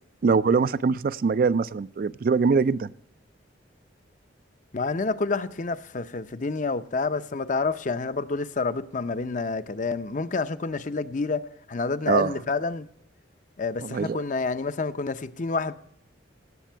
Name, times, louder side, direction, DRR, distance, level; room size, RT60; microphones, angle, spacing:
voice 1, 0.2-2.9 12.1-12.3 13.8-14.2, right 5 dB, 50° right, 0.3 m, -23 dB
voice 2, 4.7-11.4 11.7-12.9 13.6-15.7, left 3 dB, 40° left, 0.6 m, -28 dB
18.0 x 7.5 x 4.5 m
head